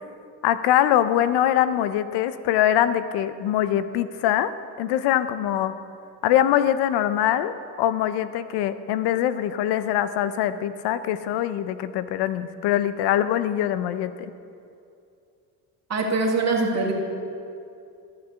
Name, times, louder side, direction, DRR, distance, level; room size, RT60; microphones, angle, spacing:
voice 1, 0.4-4.5 4.8-5.8 6.2-14.3, left 11 dB, 90° left, 13 dB, 0.7 m, -23 dB
voice 2, 15.9-16.9, right 3 dB, 40° right, 0 dB, 2.2 m, -23 dB
14.0 x 6.8 x 6.9 m, 2.5 s
cardioid pair, 100°, 39 cm